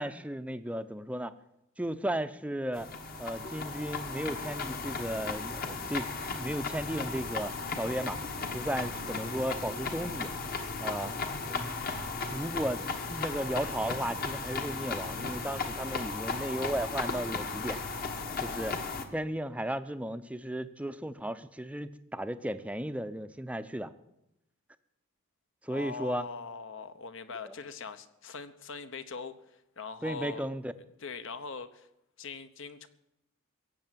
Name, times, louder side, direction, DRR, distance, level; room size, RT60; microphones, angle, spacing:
voice 1, 0.0-1.3 1.8-2.9 3.2-8.2 8.5-10.3 10.8-11.1 11.5-11.8 12.3-17.8 18.4-18.8 19.1-23.9 25.6-26.2 27.5-27.6 30.0-30.7, right 1 dB, 5° right, 12 dB, 0.6 m, -35 dB
sound 1, 2.7-19.0, left 4 dB, 45° left, 1.3 m, -36 dB
voice 2, 25.7-29.4 29.8-30.5 31.0-31.9 32.2-32.9, left 5 dB, 65° left, 11 dB, 1.0 m, -41 dB
16.5 x 7.7 x 9.1 m, 0.85 s
head